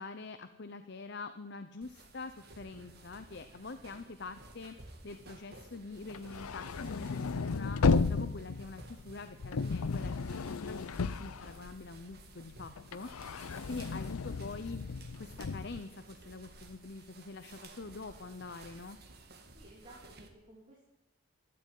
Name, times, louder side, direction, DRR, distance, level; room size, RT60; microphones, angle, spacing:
voice 1, 0.0-13.1 13.7-14.8 15.2-19.0, left 3 dB, 50° left, 10 dB, 0.7 m, -45 dB
sound 1, 1.8-20.3, right 2 dB, 45° right, 1.9 m, -55 dB
sound 2, 6.0-12.1 12.5-15.8, left 4 dB, 85° left, 0.6 m, -34 dB
voice 2, 19.5-20.8, right 1 dB, 25° right, -5 dB, 3.3 m, -56 dB
13.0 x 9.8 x 9.3 m, 0.90 s
head